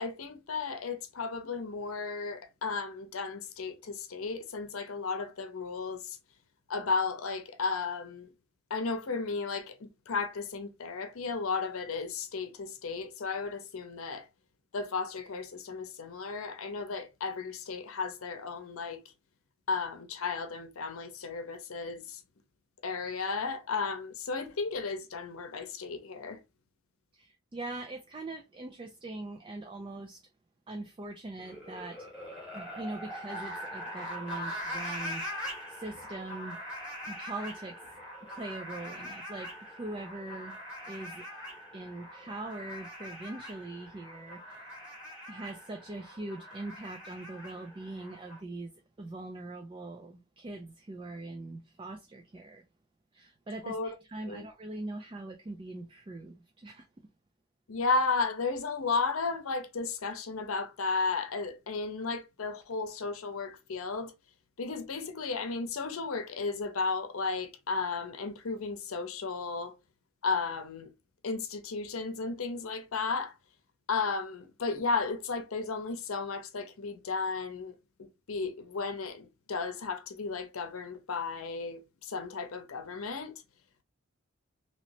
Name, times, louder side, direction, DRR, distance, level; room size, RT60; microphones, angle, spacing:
voice 1, 0.0-6.2 6.7-8.3 8.7-14.3 14.7-19.1 19.7-22.2 22.8-26.4 53.6-53.9 54.3-54.5 57.7-64.1 64.6-69.8 70.2-70.9 71.2-73.4 73.9-83.3, left 4 dB, 80° left, 0.7 m, -34 dB
voice 2, 27.1-30.3 30.7-32.1 32.5-35.2 35.7-36.7 37.1-37.8 38.3-40.6 40.9-41.3 41.7-44.8 45.3-48.7 49.0-52.6 53.1-56.9, right 2 dB, 25° right, 0.3 m, -42 dB
sound 1, 31.4-48.4, equal, 5° right, 1.6 m, -42 dB
3.0 x 2.9 x 2.7 m
head